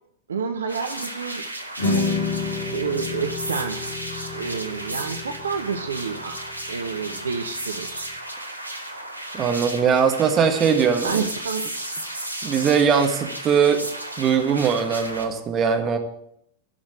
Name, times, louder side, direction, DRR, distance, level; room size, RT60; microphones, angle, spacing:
voice 1, 0.3-1.4 1.8-2.1 2.7-3.8 4.3-6.4 6.7-8.1 11.0-11.8, right 6 dB, 70° right, 8 dB, 0.7 m, -29 dB
sound 1, 0.7-15.2, right 1 dB, 85° right, 1.2 m, -34 dB
sound 2, 1.8-8.1, left 3 dB, 60° left, 2.8 m, -30 dB
voice 2, 9.3-11.2 12.4-13.9 14.2-16.0, right 6 dB, 30° right, 5 dB, 1.7 m, -20 dB
11.5 x 6.2 x 8.6 m, 0.75 s
figure-of-eight pair, 90°, 0 cm